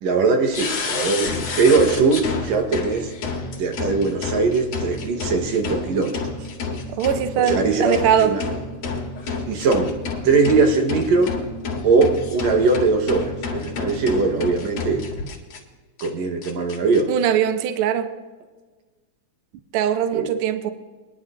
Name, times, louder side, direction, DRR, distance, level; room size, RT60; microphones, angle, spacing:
voice 1, 0.0-3.1 3.6-6.4 7.4-8.4 9.5-9.9 10.2-11.4 11.8-15.1 16.0-17.1 20.1-20.3, right 4 dB, 70° right, 4 dB, 2.4 m, -20 dB
sound 1, 0.5-15.6 16.0-16.1 16.4-17.0, left 4 dB, 65° left, 2.9 m, -29 dB
voice 2, 7.0-8.3 17.1-18.1 19.7-20.7, right 9 dB, 85° right, 9 dB, 1.2 m, -21 dB
23.5 x 11.0 x 2.6 m, 1.3 s
omnidirectional pair, 3.4 m